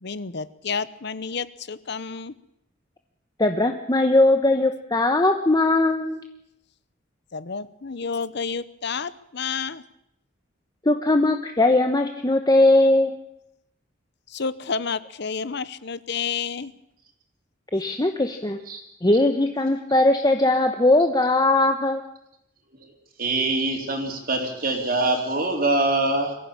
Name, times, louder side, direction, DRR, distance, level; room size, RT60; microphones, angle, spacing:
voice 1, 0.0-2.3 7.3-9.8 14.3-16.7, left 5 dB, 60° left, 16 dB, 0.9 m, -30 dB
voice 2, 3.4-6.2 10.8-13.2 17.7-18.6 19.0-22.0, left 2 dB, 20° left, 5 dB, 1.1 m, -19 dB
voice 3, 23.2-26.4, right 2 dB, 50° right, 2 dB, 3.6 m, -24 dB
23.0 x 15.0 x 8.8 m, 0.81 s
head